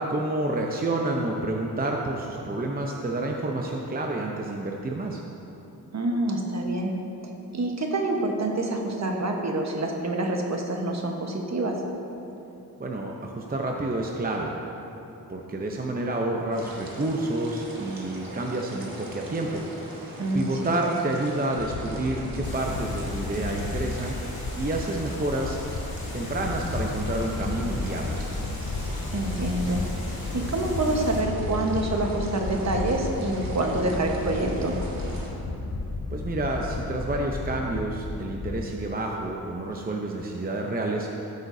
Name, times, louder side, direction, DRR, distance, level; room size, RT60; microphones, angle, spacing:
voice 1, 0.0-5.2 12.8-14.5 15.3-19.6 20.3-25.6 26.1-28.2 36.1-41.1, right 2 dB, 25° right, 0 dB, 0.7 m, -29 dB
voice 2, 5.9-6.9 7.5-11.8 20.2-20.8 29.1-29.8 30.3-34.7, right 2 dB, 45° right, 1 dB, 1.2 m, -27 dB
sound 1, 16.5-35.3, right 1 dB, 70° right, 1.7 m, -41 dB
sound 2, 21.6-38.7, left 3 dB, 40° left, 0.7 m, -33 dB
Water, 22.4-31.2, left 2 dB, 80° left, 1.9 m, -45 dB
13.5 x 8.1 x 2.7 m, 3.0 s
cardioid pair, 75°, 36 cm